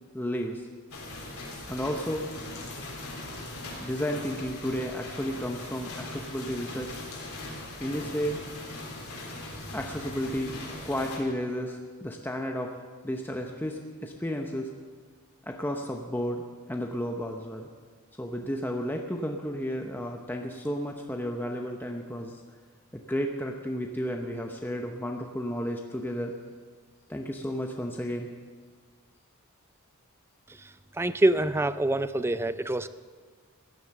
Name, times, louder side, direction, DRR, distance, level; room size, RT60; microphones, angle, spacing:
voice 1, 0.1-0.7 1.7-2.3 3.8-7.0 7.8-8.4 9.7-10.5 10.8-12.8 13.0-14.7 15.5-16.4 16.7-17.7 18.2-22.4 22.9-26.4 27.1-28.3, equal, 10° left, 2 dB, 0.7 m, -32 dB
sound 1, 0.9-11.2, left 2 dB, 75° left, 3.8 m, -40 dB
voice 2, 31.0-32.9, right 1 dB, 10° right, 14 dB, 0.4 m, -25 dB
16.0 x 11.0 x 6.6 m, 1.5 s
head